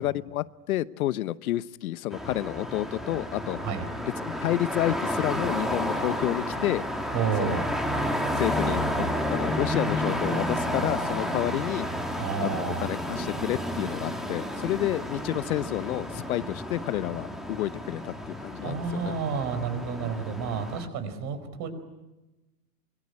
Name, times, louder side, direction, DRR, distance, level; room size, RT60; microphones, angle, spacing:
voice 1, 0.0-3.6 4.2-6.8 7.4-7.6 8.4-8.8 9.3-11.9 12.4-18.1 18.4-19.1, left 14 dB, 65° left, 17 dB, 1.0 m, -30 dB
sound 1, 2.1-20.9, equal, ahead, 2.5 m, -31 dB
voice 2, 7.1-7.7 12.2-12.9 18.6-21.7, right 6 dB, 35° right, 10 dB, 4.9 m, -30 dB
24.5 x 23.0 x 9.8 m, 1.1 s
hypercardioid pair, 135°, 47 cm